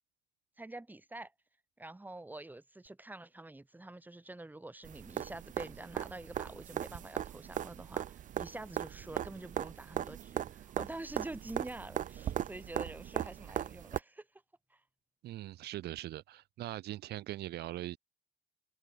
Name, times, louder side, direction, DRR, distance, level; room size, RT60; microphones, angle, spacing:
voice 1, 0.6-1.3 1.8-14.3 14.7-14.8, right 2 dB, 10° right, 5.9 m, -47 dB
sound 1, 4.8-14.0 16.0-16.1, right 11 dB, 50° right, 0.8 m, -39 dB
voice 2, 15.2-18.0, right 15 dB, 75° right, 6.1 m, -41 dB
cardioid pair, 110°, 17 cm